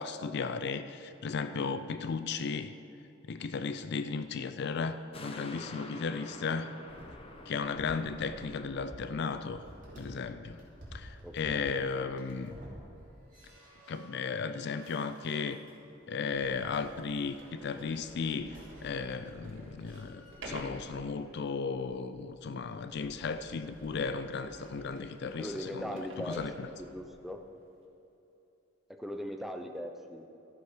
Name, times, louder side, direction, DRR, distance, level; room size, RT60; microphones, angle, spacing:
voice 1, 0.0-2.7 3.3-6.7 7.5-9.6 10.0-10.6 10.9-12.6 13.9-15.6 16.1-18.5 18.8-26.0 26.3-26.7, left 5 dB, 55° left, 11 dB, 0.4 m, -35 dB
voice 2, 1.4-1.8 11.2-11.8 25.4-27.4 28.9-30.3, equal, ahead, 4 dB, 0.6 m, -40 dB
sound 1, 5.1-11.8 12.2-12.3, left 2 dB, 30° left, 0.8 m, -49 dB
sound 2, 6.9-10.3 10.5-21.4 22.4-22.8 23.1-24.2, equal, 40° right, 2.9 m, -53 dB
Sliding door, 15.9-16.0 16.7-16.8 17.3-27.2, right 1 dB, 70° right, 1.9 m, -50 dB
13.5 x 8.0 x 5.0 m, 2.9 s
head